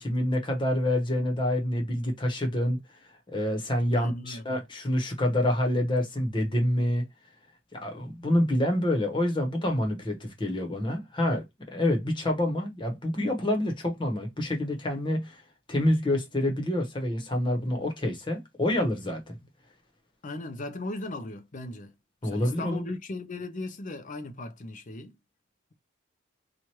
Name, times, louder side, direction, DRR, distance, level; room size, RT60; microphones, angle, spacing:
voice 1, 0.0-2.8 3.3-7.1 7.7-11.4 11.7-15.4 15.7-19.2 22.2-22.8, left 1 dB, 25° left, 1.0 m, -27 dB
voice 2, 3.9-4.4 20.2-21.9 22.2-25.1, left 2 dB, 40° left, 0.5 m, -37 dB
3.0 x 2.4 x 4.3 m
head